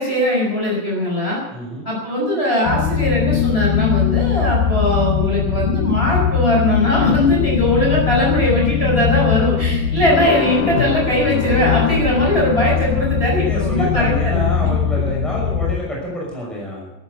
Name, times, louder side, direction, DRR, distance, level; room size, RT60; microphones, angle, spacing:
voice 1, 0.0-1.4 1.9-14.4, left 1 dB, 15° left, -3 dB, 5.9 m, -19 dB
voice 2, 1.5-1.9 12.1-12.2 13.3-16.9, left 1 dB, ahead, -3 dB, 5.4 m, -28 dB
sound 1, 2.7-15.8, left 8 dB, 75° left, 2.5 m, -20 dB
13.5 x 13.0 x 8.2 m, 0.98 s
omnidirectional pair, 3.9 m